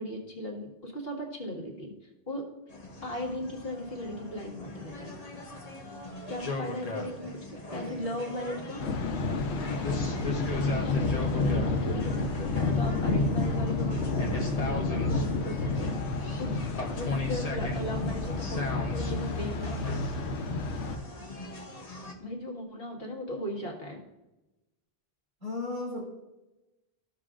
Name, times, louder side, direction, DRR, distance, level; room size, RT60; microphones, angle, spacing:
voice 1, 0.0-1.9 2.3-2.4 3.0-5.2 6.3-8.8 10.6-15.9 16.4-16.6 16.9-19.9 22.2-24.0, equal, 60° left, 0 dB, 1.9 m, -37 dB
sound 1, 2.7-22.1, left 2 dB, 35° left, 1.1 m, -39 dB
voice 2, 6.1-8.9 25.4-26.0, left 2 dB, 45° right, -4 dB, 2.8 m, -41 dB
Thunder, 8.8-21.0, left 3 dB, 85° left, 1.1 m, -30 dB
14.5 x 6.2 x 2.5 m, 1.0 s
omnidirectional pair, 1.1 m